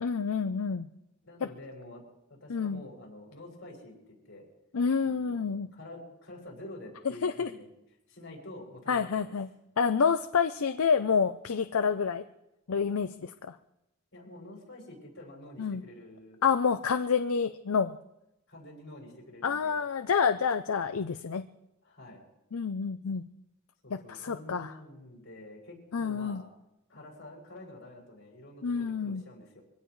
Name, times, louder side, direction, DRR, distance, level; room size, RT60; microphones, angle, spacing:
voice 1, 0.0-0.9 2.5-2.8 4.7-5.7 7.2-7.5 8.9-9.5 9.8-12.2 12.7-13.5 15.6-15.8 16.4-17.9 19.4-21.4 22.5-23.2 24.1-24.7 25.9-26.4 28.6-29.2, left 6 dB, 75° left, 9 dB, 0.6 m, -28 dB
voice 2, 1.2-2.0 2.3-4.5 5.0-7.7 8.1-9.3 14.1-16.4 18.5-19.8 21.8-22.2 23.8-26.5 26.9-29.6, left 1 dB, 55° left, -2 dB, 6.6 m, -48 dB
24.5 x 17.0 x 3.2 m, 0.89 s
head